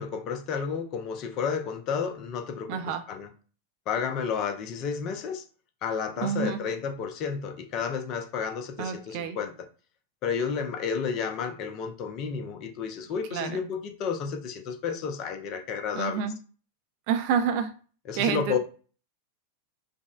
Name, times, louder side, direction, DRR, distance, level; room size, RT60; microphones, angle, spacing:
voice 1, 0.0-3.3 3.9-5.4 5.8-9.5 10.2-16.2 18.1-18.6, left 6 dB, 40° left, 0.6 m, -31 dB
voice 2, 2.7-3.0 6.2-6.6 8.8-9.4 13.3-13.6 15.9-16.4 17.1-17.7 18.1-18.6, right 7 dB, 45° right, 0.5 m, -28 dB
5.0 x 2.1 x 2.4 m
figure-of-eight pair, 90°, 0 cm